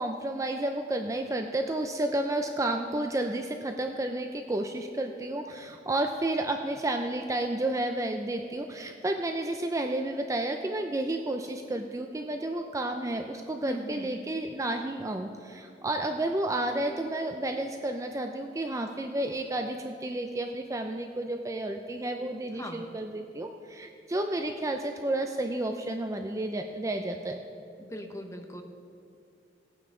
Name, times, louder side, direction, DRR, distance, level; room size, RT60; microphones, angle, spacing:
voice 1, 0.0-27.4, right 1 dB, 20° right, 5 dB, 0.5 m, -31 dB
voice 2, 13.7-14.1 22.6-22.9 27.8-28.6, equal, 15° left, 4 dB, 0.9 m, -39 dB
17.5 x 9.1 x 3.8 m, 2.5 s
head